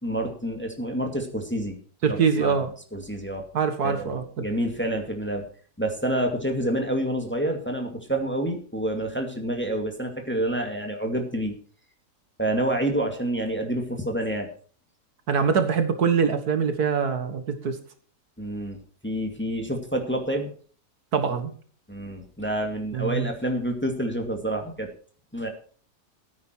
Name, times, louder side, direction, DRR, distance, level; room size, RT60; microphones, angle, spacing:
voice 1, 0.0-1.7 2.1-2.6 2.9-3.5 3.8-5.5 5.8-11.5 12.4-14.5 18.4-18.8 19.0-20.5 21.9-24.9 25.3-25.5, right 1 dB, 5° left, 3 dB, 2.0 m, -28 dB
voice 2, 2.0-2.7 3.5-4.4 15.3-17.8 21.1-21.5 22.9-23.3, right 6 dB, 65° right, 8 dB, 1.9 m, -24 dB
14.5 x 9.6 x 4.5 m, 0.44 s
omnidirectional pair, 1.8 m